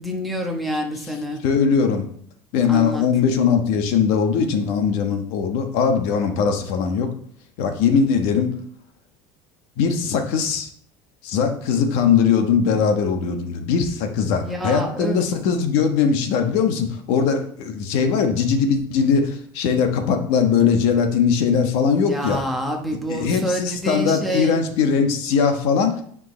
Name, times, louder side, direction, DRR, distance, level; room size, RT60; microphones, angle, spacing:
voice 1, 0.0-1.4 2.7-3.1 14.4-15.2 22.0-24.6, equal, ahead, 1 dB, 1.3 m, -27 dB
voice 2, 1.4-2.1 2.5-7.1 7.6-8.5 9.8-10.7 11.2-22.4 23.1-26.0, left 6 dB, 70° left, 5 dB, 1.3 m, -20 dB
9.7 x 5.2 x 3.3 m, 0.62 s
cardioid pair, 150°, 11 cm